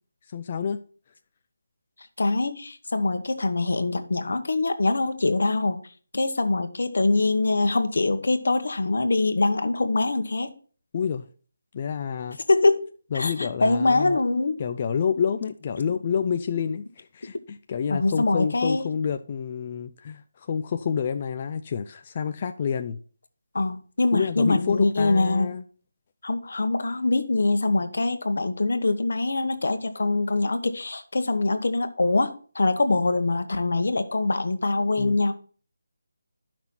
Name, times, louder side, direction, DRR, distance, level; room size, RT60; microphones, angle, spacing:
voice 1, 0.3-0.8 10.9-11.3 11.7-12.4 13.1-14.2 14.6-23.0 24.1-25.6 35.0-35.2, left 7 dB, 30° left, 0.4 m, -28 dB
voice 2, 2.2-5.8 6.1-10.5 12.5-12.9 13.1-14.6 17.9-18.8 23.5-25.5 26.2-35.3, left 2 dB, 70° left, 1.2 m, -23 dB
11.0 x 5.9 x 4.3 m
figure-of-eight pair, 170°, 0 cm